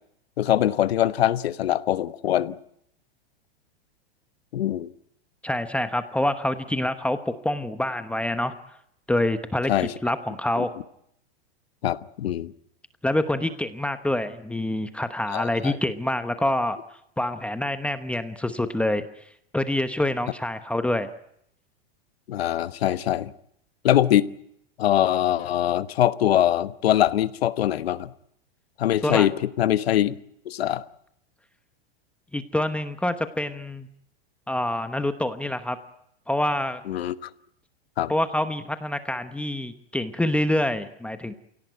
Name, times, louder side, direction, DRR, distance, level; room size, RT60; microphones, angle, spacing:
voice 1, 0.4-2.6 4.5-4.9 9.7-9.9 10.6-10.7 11.8-12.5 15.3-15.8 22.3-23.3 23.8-24.3 24.8-28.1 28.8-29.3 29.6-30.1 30.4-30.8 36.9-37.1 38.0-38.1, left 12 dB, 85° left, 14 dB, 1.3 m, -23 dB
voice 2, 5.4-8.5 9.1-9.7 10.0-10.7 13.0-16.8 17.2-19.0 19.5-21.1 29.0-29.3 32.3-33.9 34.5-35.8 36.3-36.8 38.1-41.3, left 1 dB, 5° left, 9 dB, 1.0 m, -26 dB
28.5 x 17.5 x 9.3 m, 0.75 s
supercardioid pair, 140°, 30 cm